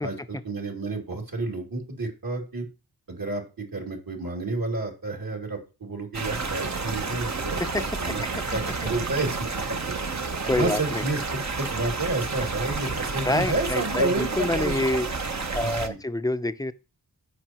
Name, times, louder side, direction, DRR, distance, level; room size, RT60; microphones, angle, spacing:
voice 1, 0.0-2.7 3.1-8.2 8.5-9.8 10.6-14.8 15.6-16.0, right 2 dB, 65° right, 2.8 m, -30 dB
sound 1, 6.1-15.9, right 4 dB, 45° right, 1.0 m, -30 dB
voice 2, 7.6-8.1 10.5-11.0 13.2-15.1 15.5-16.7, left 1 dB, 10° left, 0.6 m, -27 dB
14.0 x 5.3 x 3.0 m
wide cardioid pair, 60°, 38 cm